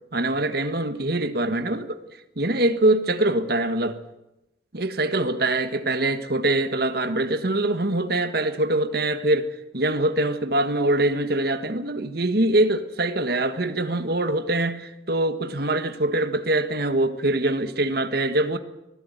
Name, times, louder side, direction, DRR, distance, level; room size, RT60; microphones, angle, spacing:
voice 1, 0.1-2.0 2.4-4.0 4.7-18.6, right 1 dB, 55° right, 1.6 m, -23 dB
24.5 x 16.5 x 9.4 m
head